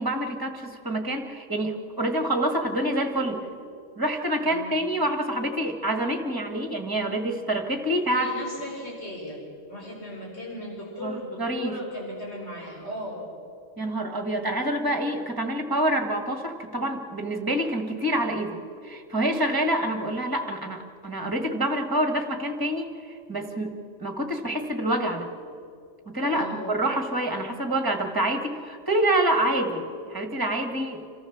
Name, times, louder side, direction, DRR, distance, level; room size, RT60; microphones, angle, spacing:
voice 1, 0.0-3.4 4.0-8.3 11.0-11.1 11.4-11.7 13.8-18.6 18.8-22.9 23.3-23.7 24.0-25.3 26.1-31.0, right 1 dB, 15° right, 5 dB, 1.8 m, -27 dB
voice 2, 4.4-4.8 8.0-9.4 9.7-13.2 26.2-26.6, equal, 55° left, -3 dB, 4.9 m, -37 dB
26.5 x 14.0 x 7.2 m, 2.3 s
omnidirectional pair, 1.3 m